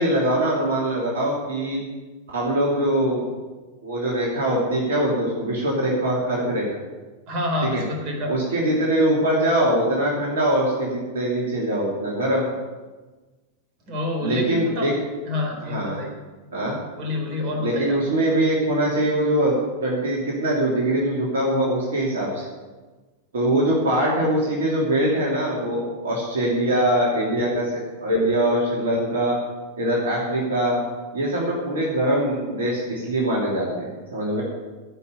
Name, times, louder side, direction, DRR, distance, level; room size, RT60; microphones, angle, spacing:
voice 1, 0.0-1.8 2.3-3.2 3.8-6.7 7.7-7.8 8.3-12.5 14.2-14.9 15.6-16.0 16.5-16.8 17.6-19.5 19.8-22.4 23.3-29.4 29.8-30.8 31.1-34.4, right 1 dB, 60° right, -4 dB, 3.1 m, -22 dB
voice 2, 7.3-8.3 13.9-14.9 15.3-16.1 17.0-18.0, left 2 dB, 40° right, 1 dB, 4.0 m, -27 dB
15.5 x 5.8 x 8.3 m, 1.3 s
figure-of-eight pair, 90°, 0 cm